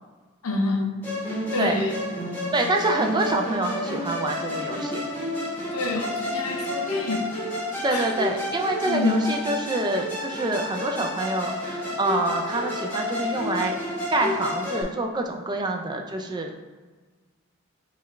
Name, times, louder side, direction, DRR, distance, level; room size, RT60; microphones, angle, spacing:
voice 1, 0.4-0.9 1.5-2.0 5.7-7.2 7.9-8.1 8.8-9.3, left 2 dB, 85° left, 1 dB, 0.6 m, -27 dB
Musical instrument, 1.0-14.8, left 1 dB, 10° left, 1.0 m, -30 dB
voice 2, 2.5-5.0 7.8-13.8 14.1-16.5, right 2 dB, 20° right, 3 dB, 0.3 m, -26 dB
4.9 x 2.3 x 3.2 m, 1.4 s
head